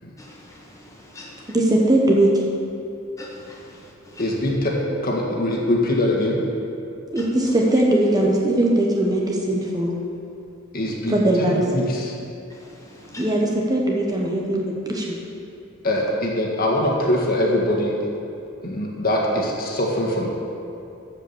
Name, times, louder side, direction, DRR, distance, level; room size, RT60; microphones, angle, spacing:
voice 1, 0.2-1.5 3.2-4.2 7.2-7.3 12.5-13.3, left 1 dB, 15° left, -3 dB, 1.8 m, -43 dB
voice 2, 1.5-2.4 7.1-9.9 11.1-11.6 13.2-15.2, right 1 dB, 20° right, -2 dB, 1.0 m, -20 dB
voice 3, 4.2-6.4 10.7-12.1 15.8-17.9 18.6-20.3, left 1 dB, 45° left, -2 dB, 1.8 m, -23 dB
14.0 x 5.2 x 7.0 m, 2.7 s
head